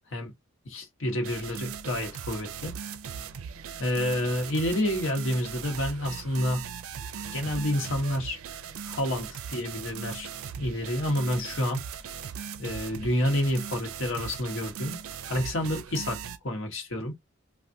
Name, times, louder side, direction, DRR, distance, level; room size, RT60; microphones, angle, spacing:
voice 1, 0.7-2.7 3.8-6.6 7.3-8.4 8.9-10.3 10.6-11.8 12.6-15.0 15.3-17.1, left 1 dB, 65° left, 0.9 m, -29 dB
sound 1, 1.2-16.4, right 7 dB, 85° right, 0.4 m, -39 dB
3.4 x 2.3 x 2.5 m
head